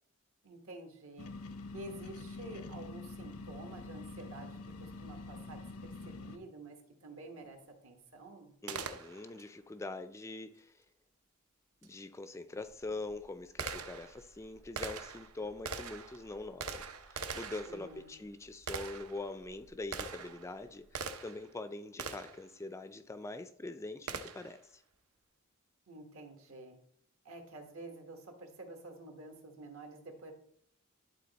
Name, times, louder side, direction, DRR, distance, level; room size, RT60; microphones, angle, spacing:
voice 1, 0.4-1.3 1.7-5.6 6.0-8.5 17.6-18.2 25.9-26.8 27.2-30.3, right 2 dB, 70° right, 1.4 m, -49 dB
sound 1, 1.2-6.4, left 3 dB, 90° left, 0.7 m, -46 dB
voice 2, 8.6-10.8 11.8-24.8, left 2 dB, 15° left, 0.3 m, -44 dB
Gunshot gunfire, 8.7-9.5 11.8-11.9 12.6-21.5 22.0-22.5 24.1-24.6, right 5 dB, 90° right, 0.7 m, -43 dB
11.0 x 3.9 x 4.1 m
head